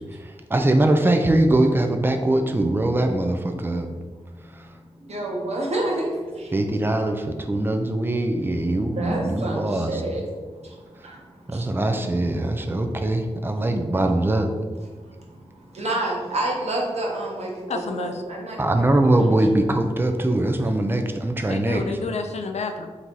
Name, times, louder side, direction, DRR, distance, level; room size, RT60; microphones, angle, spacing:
voice 1, 0.1-3.9 4.5-4.7 6.5-10.0 11.5-14.5 18.6-21.8, right 1 dB, 20° right, 4 dB, 0.5 m, -22 dB
voice 2, 5.1-6.5 9.0-10.2 11.0-11.2 11.5-11.6 15.7-19.3, right 1 dB, 75° right, -3 dB, 1.1 m, -28 dB
voice 3, 17.7-18.2 21.5-22.9, left 4 dB, 80° left, 6 dB, 0.4 m, -29 dB
3.9 x 2.8 x 4.5 m, 1.4 s
wide cardioid pair, 60°, 11 cm